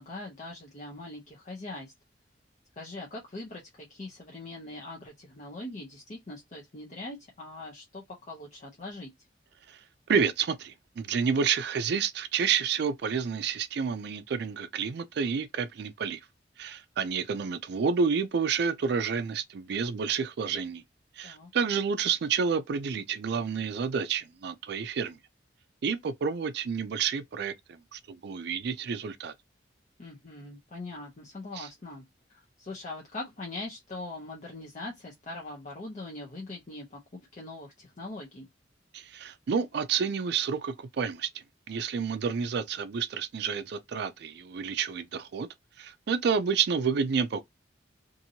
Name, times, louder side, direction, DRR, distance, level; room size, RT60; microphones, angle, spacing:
voice 1, 0.0-1.9 2.8-9.1 21.2-21.5 30.0-32.1 32.3-37.0 37.3-38.5, left 2 dB, 45° left, 0.7 m, -41 dB
voice 2, 10.1-16.2 16.6-20.8 21.2-25.2 25.8-29.3 31.6-31.7 38.9-45.5 45.8-47.4, right 6 dB, 65° right, 0.4 m, -29 dB
2.8 x 2.6 x 2.7 m
head